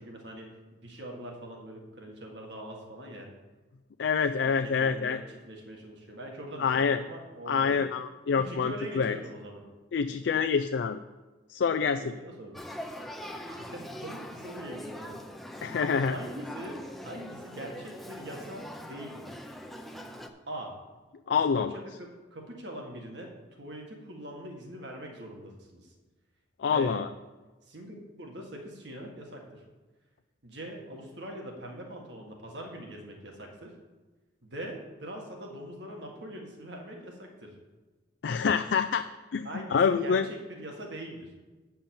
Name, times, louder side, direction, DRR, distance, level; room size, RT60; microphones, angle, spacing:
voice 1, 0.0-3.3 4.4-7.8 8.3-9.6 12.0-12.5 13.5-15.2 16.1-19.3 20.5-20.7 21.3-25.9 26.6-26.9 27.7-29.6 30.4-33.7 34.4-37.5 39.4-41.3, right 1 dB, 65° right, 1 dB, 1.8 m, -42 dB
voice 2, 4.0-5.2 6.6-7.0 7.5-9.2 9.9-11.0 11.5-12.1 15.6-16.1 21.3-21.7 26.6-27.1 38.2-39.1 39.3-40.3, left 6 dB, 65° left, 9 dB, 0.3 m, -26 dB
Male speech man speaking / Child speech kid speaking / Conversation, 12.5-20.3, equal, ahead, 0.6 m, -42 dB
9.0 x 5.6 x 7.1 m, 1.2 s
head